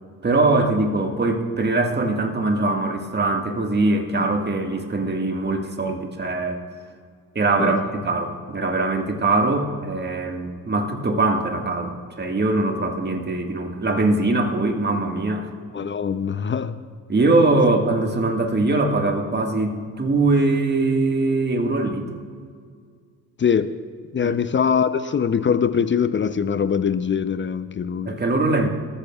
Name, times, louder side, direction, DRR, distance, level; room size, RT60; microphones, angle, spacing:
voice 1, 0.2-6.6 7.4-15.5 17.1-22.2 24.2-24.4 28.1-28.7, right 2 dB, 25° right, 4 dB, 1.8 m, -22 dB
voice 2, 15.7-16.7 23.4-23.7 24.1-28.1, left 7 dB, 25° left, 12 dB, 0.7 m, -22 dB
26.5 x 13.5 x 2.4 m, 2.1 s
hypercardioid pair, 50°, 43 cm